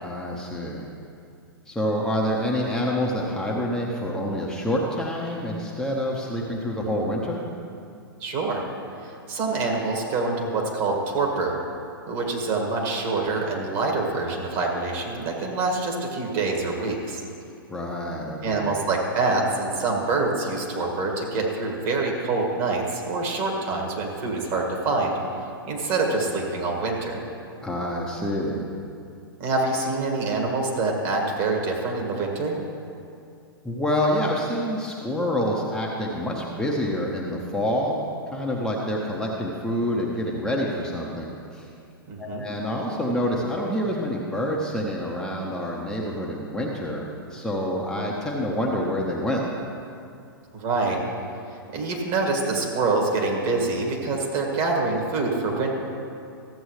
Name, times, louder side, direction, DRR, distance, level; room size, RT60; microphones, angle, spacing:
voice 1, 0.0-0.9 1.7-7.4 17.7-18.7 27.6-28.6 33.6-38.0 38.3-41.7 42.2-49.4, equal, 5° left, -4 dB, 0.9 m, -27 dB
voice 2, 8.2-8.6 9.3-11.6 12.1-17.2 18.4-25.2 25.6-27.2 29.4-32.6 42.1-42.4 50.5-51.0 51.7-55.7, right 3 dB, 40° right, 0 dB, 2.0 m, -25 dB
14.5 x 7.9 x 3.2 m, 2.5 s
figure-of-eight pair, 105°, 12 cm